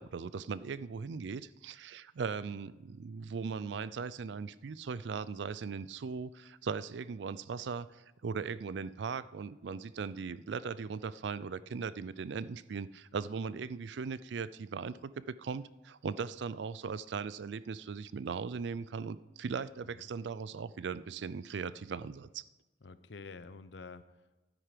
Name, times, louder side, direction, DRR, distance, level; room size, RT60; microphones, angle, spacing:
voice 1, 0.0-15.1 15.4-22.4, right 5 dB, 70° right, 17 dB, 0.4 m, -39 dB
voice 2, 22.8-24.5, left 4 dB, 70° left, 13 dB, 0.7 m, -49 dB
12.5 x 9.2 x 5.0 m, 1.1 s
head